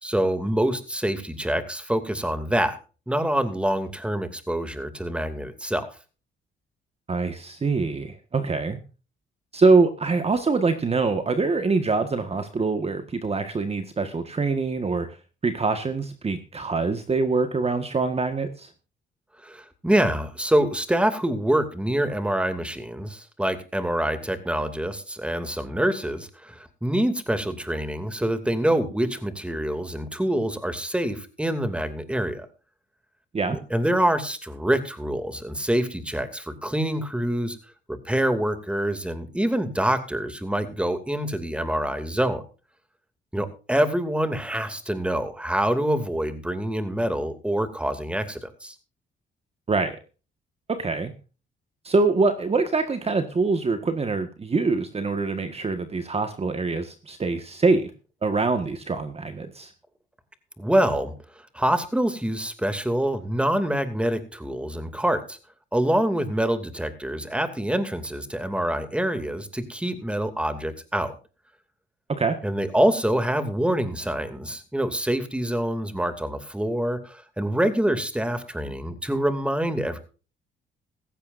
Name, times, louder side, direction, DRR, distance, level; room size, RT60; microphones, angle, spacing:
voice 1, 0.0-2.8 3.1-5.9 19.4-32.5 33.5-37.6 37.9-42.4 43.3-48.7 60.6-61.1 61.5-65.4 65.7-71.1 72.4-80.0, right 1 dB, 5° right, 9 dB, 2.6 m, -26 dB
voice 2, 7.1-8.8 9.5-15.1 15.4-18.7 33.3-33.6 49.7-50.0 50.7-51.1 51.8-57.9 58.2-59.7 72.1-72.4, right 3 dB, 30° right, 8 dB, 1.6 m, -24 dB
17.0 x 15.0 x 2.6 m, 0.34 s
cardioid pair, 90°, 20 cm